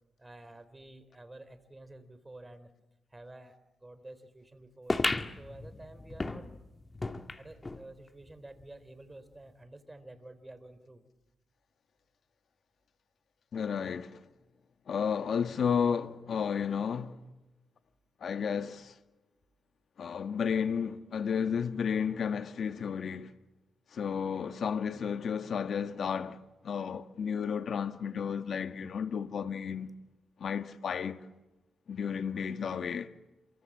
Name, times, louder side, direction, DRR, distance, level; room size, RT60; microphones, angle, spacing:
voice 1, 0.2-2.7 3.1-5.0 5.4-6.5 7.4-11.1, right 2 dB, 20° right, 3.9 m, -50 dB
sound 1, 4.9-7.8 8.3-8.4 8.6-8.7 9.5-9.6, left 2 dB, 25° left, 1.9 m, -34 dB
voice 2, 13.5-14.2 14.9-17.2 18.2-18.9 20.0-23.3 23.9-26.4 26.6-29.9 30.4-31.2 31.9-33.1, left 7 dB, 65° left, 1.5 m, -32 dB
27.5 x 24.5 x 7.5 m
cardioid pair, 80°, 0 cm